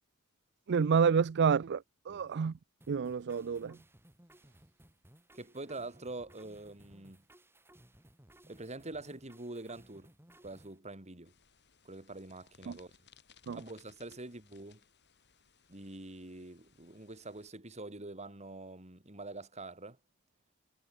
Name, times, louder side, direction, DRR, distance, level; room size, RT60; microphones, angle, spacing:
voice 1, 0.7-2.5 2.9-3.8 12.7-12.8 13.5-13.6, right 6 dB, 50° right, 0.4 m, -29 dB
sound 1, 2.8-10.8, right 1 dB, 10° right, 3.7 m, -61 dB
voice 2, 5.3-7.2 8.5-10.1 10.4-11.3 11.8-12.9 13.5-14.8 15.7-20.0, right 2 dB, 30° right, 2.9 m, -45 dB
sound 2, 11.2-17.5, left 7 dB, 50° left, 4.5 m, -65 dB
head